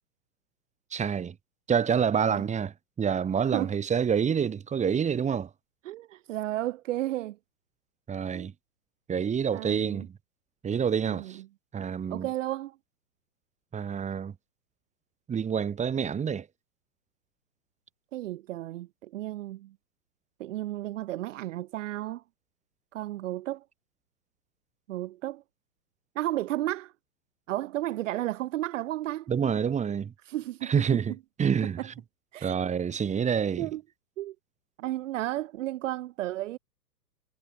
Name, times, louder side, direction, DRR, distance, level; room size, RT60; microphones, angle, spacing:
voice 1, 0.9-1.4 1.7-5.5 8.1-8.5 9.1-10.1 10.6-11.4 11.7-12.3 13.7-14.3 15.3-16.5 29.3-30.1 30.6-31.1 31.4-31.9 32.4-33.7, right 7 dB, 15° right, 5.6 m, -27 dB
voice 2, 5.8-7.4 8.3-8.5 9.5-10.1 11.0-11.4 12.1-12.8 18.1-19.7 20.4-22.2 22.9-23.6 24.9-25.4 26.1-26.9 27.5-29.3 30.3-30.7 31.8-31.9 32.3-32.6 33.6-33.8 34.2-34.3 34.8-36.6, right 15 dB, 45° right, 3.4 m, -33 dB
hypercardioid pair, 125°, 50 cm